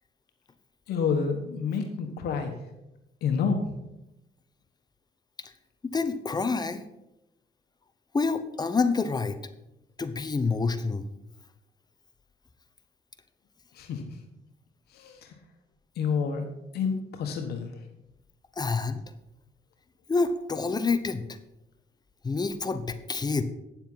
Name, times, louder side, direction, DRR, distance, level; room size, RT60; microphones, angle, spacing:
voice 1, 0.9-2.5 3.2-3.6 13.7-14.2 14.9-15.3 16.0-16.4 16.7-17.7, left 6 dB, 85° left, 5 dB, 1.2 m, -29 dB
voice 2, 5.8-6.8 8.1-9.4 10.0-11.0 18.6-19.0 20.1-21.2 22.2-23.4, left 4 dB, 25° left, 10 dB, 0.9 m, -27 dB
9.3 x 7.3 x 5.5 m, 0.89 s
cardioid pair, 100°, 16 cm